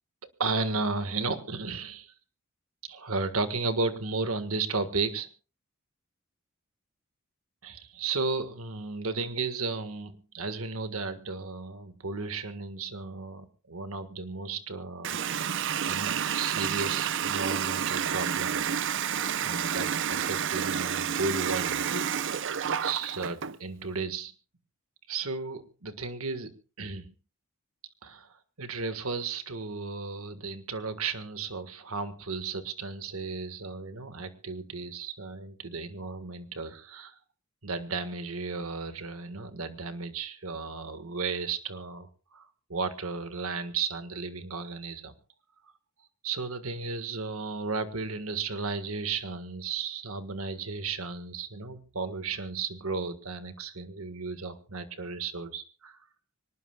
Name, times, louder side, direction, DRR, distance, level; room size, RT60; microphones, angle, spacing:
voice 1, 0.4-2.1 2.9-5.3 7.6-15.4 15.9-18.6 19.4-21.8 22.8-24.3 25.1-26.5 26.8-27.1 28.0-28.3 28.6-37.1 37.6-42.4 42.7-45.1 46.2-56.0, right 4 dB, 80° right, 9 dB, 1.6 m, -34 dB
Water tap faucet, 15.0-23.6, right 8 dB, 60° right, 0.7 m, -30 dB
25.0 x 19.5 x 2.3 m, 0.36 s
head